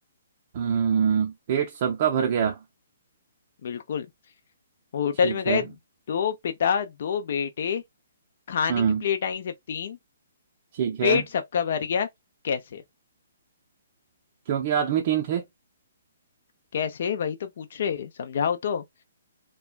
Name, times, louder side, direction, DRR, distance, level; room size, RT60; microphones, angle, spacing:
voice 1, 0.5-2.6 5.2-5.6 8.7-9.0 10.7-11.2 14.5-15.4, right 8 dB, 40° right, 0.5 m, -24 dB
voice 2, 3.6-4.1 4.9-5.7 6.1-7.8 8.5-10.0 11.0-12.1 12.4-12.8 16.7-18.8, left 7 dB, 55° left, 0.5 m, -27 dB
2.9 x 2.2 x 2.2 m
hypercardioid pair, 160°, 0 cm